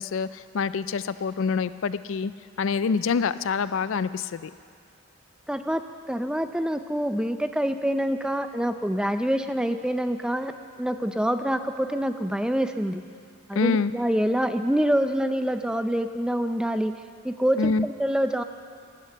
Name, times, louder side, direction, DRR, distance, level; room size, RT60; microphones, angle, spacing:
voice 1, 0.0-2.3 2.6-4.5 13.5-13.9 17.6-17.9, left 5 dB, 65° left, 14 dB, 0.4 m, -26 dB
voice 2, 5.5-10.5 10.8-13.0 13.5-16.9 17.2-18.4, equal, 5° right, 9 dB, 0.4 m, -26 dB
15.5 x 11.5 x 6.7 m, 2.2 s
head